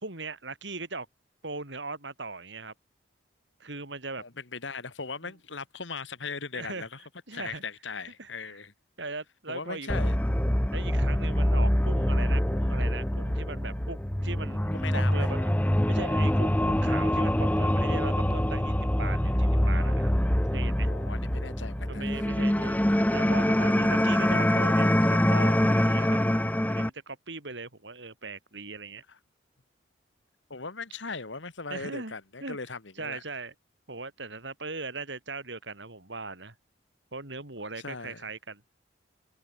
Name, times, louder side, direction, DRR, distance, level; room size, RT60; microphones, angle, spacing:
voice 1, 0.0-1.1 1.4-2.7 3.6-4.2 6.5-6.9 7.3-7.6 8.2-8.3 9.0-9.9 10.7-15.5 15.9-20.1 20.5-20.9 21.9-22.8 23.1-26.2 26.6-29.0 31.7-32.1 32.4-32.6 33.0-33.5 33.9-36.5 37.1-38.6, right 3 dB, 70° right, 3.8 m, -39 dB
voice 2, 4.2-7.0 7.3-8.7 9.5-10.2 14.7-15.3 20.8-22.3 29.1-29.2 30.5-33.2 37.8-38.2, left 4 dB, 75° left, 2.0 m, -39 dB
sound 1, 9.9-26.9, equal, 10° left, 0.9 m, -25 dB
head